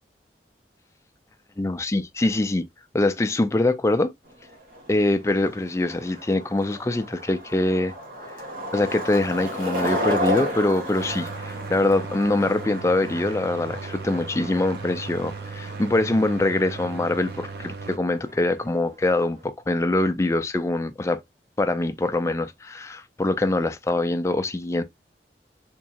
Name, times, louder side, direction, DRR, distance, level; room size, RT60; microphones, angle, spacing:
voice 1, 1.6-2.7 2.9-4.1 4.9-7.9 8.7-21.2 21.6-24.8, left 2 dB, 15° left, 0.4 m, -24 dB
Skateboard, 4.3-19.4, equal, 50° right, 1.5 m, -34 dB
sound 1, 11.0-18.0, right 4 dB, 65° right, 0.6 m, -37 dB
3.6 x 3.0 x 2.8 m
head